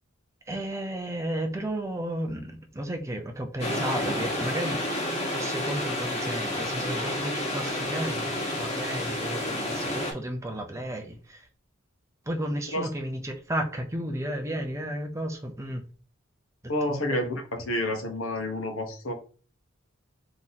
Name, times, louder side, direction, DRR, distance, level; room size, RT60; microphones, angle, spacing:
voice 1, 0.5-4.9 5.3-11.5 12.3-15.8 16.9-17.2, right 1 dB, 15° right, 0.6 m, -33 dB
sound 1, 3.6-10.1, left 1 dB, 35° left, 1.6 m, -30 dB
voice 2, 16.7-19.1, left 1 dB, 85° left, 1.2 m, -29 dB
3.7 x 2.9 x 4.0 m
head